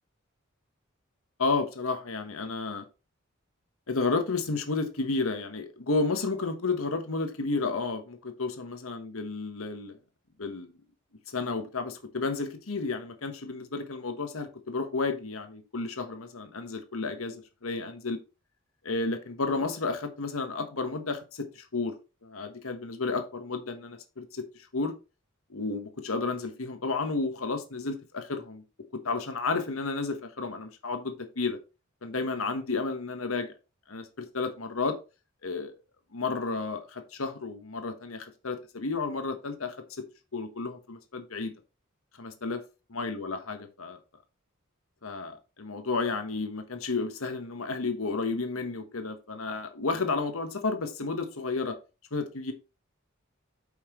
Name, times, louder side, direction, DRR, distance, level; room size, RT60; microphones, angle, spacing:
voice 1, 1.4-2.8 3.9-10.0 10.4-10.7 11.3-18.2 18.8-21.9 22.2-24.9 25.5-28.6 29.0-31.6 32.0-33.5 33.9-35.0 35.4-35.7 36.1-39.8 40.3-41.5 42.2-42.6 42.9-44.0 45.0-51.8 52.1-52.5, left 3 dB, 85° left, 1.3 m, -32 dB
8.5 x 5.6 x 3.1 m
head